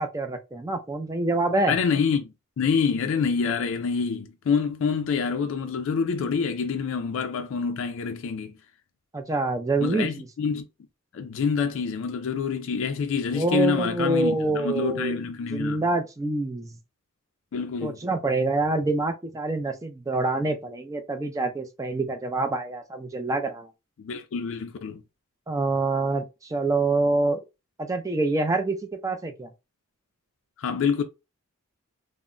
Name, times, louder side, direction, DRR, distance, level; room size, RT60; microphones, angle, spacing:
voice 1, 0.0-1.7 9.1-10.3 13.3-15.2 15.5-16.7 17.8-23.7 25.5-27.4 27.8-28.8 29.0-29.5, right 2 dB, 15° right, 0.3 m, -26 dB
voice 2, 1.7-8.6 9.8-10.6 11.1-15.8 17.5-18.0 24.0-25.0 30.6-31.0, left 6 dB, 60° left, 0.3 m, -27 dB
2.1 x 2.0 x 3.6 m
head